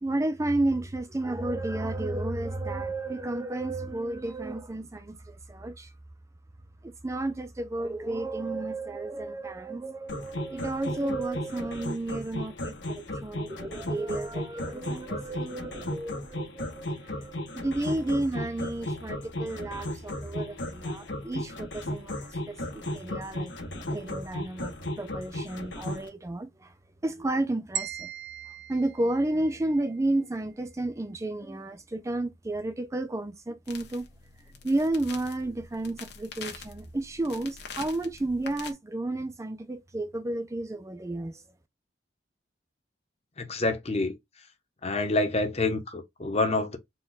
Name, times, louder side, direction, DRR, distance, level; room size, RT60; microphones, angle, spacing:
voice 1, 0.0-5.9 6.8-26.7 27.0-28.1 28.7-34.1 34.6-41.4, right 2 dB, 15° right, 0.4 m, -32 dB
sound 1, 10.1-26.1, left 1 dB, 80° left, 1.4 m, -35 dB
sound 2, 27.7-29.9, right 9 dB, 70° right, 0.6 m, -38 dB
sound 3, 33.7-38.7, left 6 dB, 65° left, 1.1 m, -45 dB
voice 2, 43.4-44.1 44.8-46.8, left 2 dB, 35° left, 0.9 m, -27 dB
4.3 x 2.3 x 4.0 m
head